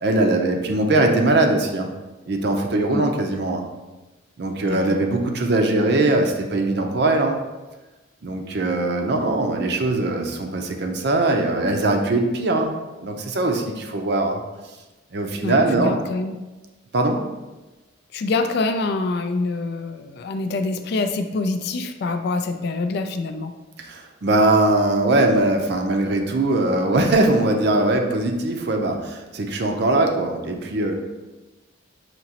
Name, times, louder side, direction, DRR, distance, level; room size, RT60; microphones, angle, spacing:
voice 1, 0.0-1.9 2.3-3.6 4.4-7.4 8.2-12.7 13.0-14.4 15.1-16.0 16.9-17.2 23.8-30.9, right 2 dB, 55° right, 4 dB, 0.5 m, -21 dB
voice 2, 4.7-5.0 15.4-16.3 18.1-23.5, left 3 dB, 55° left, 7 dB, 0.3 m, -25 dB
5.9 x 2.9 x 2.8 m, 1.1 s
head